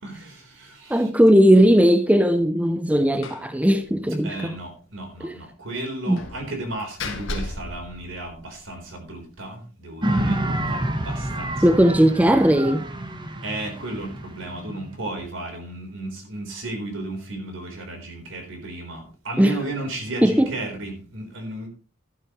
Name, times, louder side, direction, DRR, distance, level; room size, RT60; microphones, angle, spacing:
voice 1, 0.0-1.1 4.2-10.4 10.7-11.8 13.4-21.7, right 2 dB, 65° right, 3.9 m, -34 dB
voice 2, 0.9-4.5 5.2-5.4 6.1-6.2 11.6-12.9 19.4-19.6 20.2-20.5, equal, 5° right, 0.5 m, -17 dB
Slam, 3.2-3.5 3.8-3.9 4.3-4.4 6.2-8.8, left 2 dB, 65° left, 1.8 m, -35 dB
sound 1, 10.0-15.2, right 1 dB, 25° right, 1.2 m, -28 dB
12.0 x 12.0 x 3.1 m
head